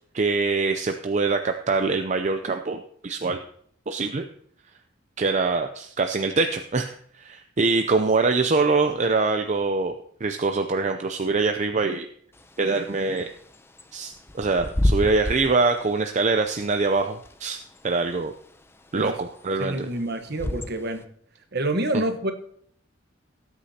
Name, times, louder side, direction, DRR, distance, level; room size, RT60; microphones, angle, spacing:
voice 1, 0.1-3.4 3.9-4.3 5.2-12.1 12.6-13.3 13.9-18.3 18.9-19.9, right 3 dB, 35° right, 0.5 m, -24 dB
Bird / Wind, 12.3-21.0, left 1 dB, 10° left, 0.6 m, -31 dB
voice 2, 19.6-21.1 21.5-22.3, right 1 dB, 55° right, 1.2 m, -27 dB
18.5 x 8.3 x 2.8 m
head